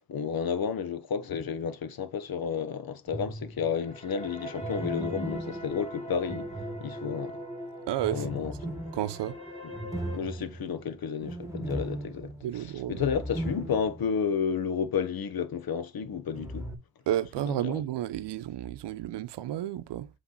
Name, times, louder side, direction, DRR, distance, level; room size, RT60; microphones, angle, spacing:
voice 1, 0.1-6.5 6.8-7.4 8.1-8.5 9.6-9.7 10.1-16.7 17.5-17.8, left 7 dB, 55° left, 1.2 m, -31 dB
sound 1, 3.1-3.8 4.6-7.3 8.0-14.2 14.5-14.6 16.3-16.7, right 1 dB, 5° right, 1.7 m, -38 dB
sound 2, 3.6-10.2, right 1 dB, 15° left, 3.2 m, -41 dB
voice 2, 7.9-9.4 12.4-13.0 17.1-20.1, right 12 dB, 70° right, 0.8 m, -32 dB
7.4 x 3.4 x 4.1 m
cardioid pair, 75°, 43 cm